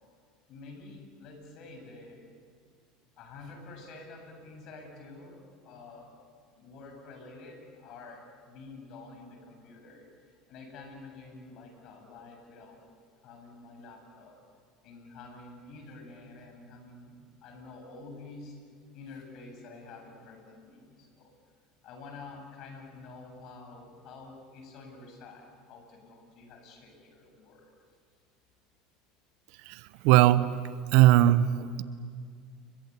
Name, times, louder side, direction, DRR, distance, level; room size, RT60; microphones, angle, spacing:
voice 1, 0.5-2.2 3.2-6.1 6.5-12.8 13.2-14.4 14.8-18.6 18.9-21.3 21.8-27.7, left 3 dB, 55° left, 4 dB, 7.9 m, -48 dB
voice 2, 29.7-30.5 30.9-31.8, right 14 dB, 70° right, 16 dB, 1.0 m, -20 dB
29.5 x 23.5 x 8.4 m, 2.1 s
hypercardioid pair, 85°, 0 cm